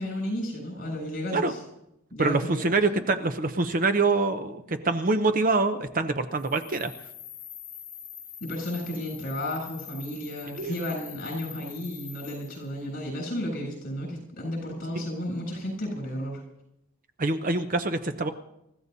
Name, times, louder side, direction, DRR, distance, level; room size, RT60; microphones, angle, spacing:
voice 1, 0.0-1.6 2.1-2.7 8.4-16.4, left 1 dB, 45° left, 1 dB, 7.7 m, -33 dB
voice 2, 2.2-6.9 10.6-10.7 17.2-18.3, right 3 dB, 40° right, 8 dB, 0.7 m, -25 dB
sound 1, 6.3-12.7, left 8 dB, 65° left, 1.5 m, -44 dB
28.5 x 15.0 x 2.8 m, 0.84 s
head